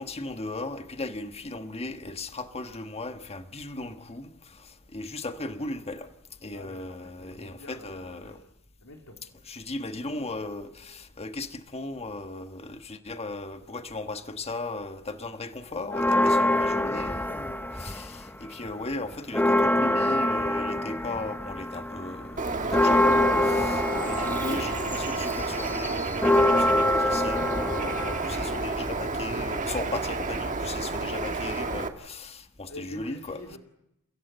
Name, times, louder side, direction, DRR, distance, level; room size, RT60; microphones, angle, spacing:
voice 1, 0.0-6.1 6.4-8.4 9.5-33.4, left 2 dB, 30° left, 1.4 m, -37 dB
voice 2, 6.5-8.5 8.8-9.2 32.7-33.6, left 2 dB, 80° left, 3.7 m, -46 dB
sound 1, 15.9-18.3 18.7-29.1, left 1 dB, 10° left, 0.9 m, -25 dB
Bird, 22.4-31.9, right 3 dB, 35° right, 1.8 m, -31 dB
30.0 x 16.0 x 8.0 m
head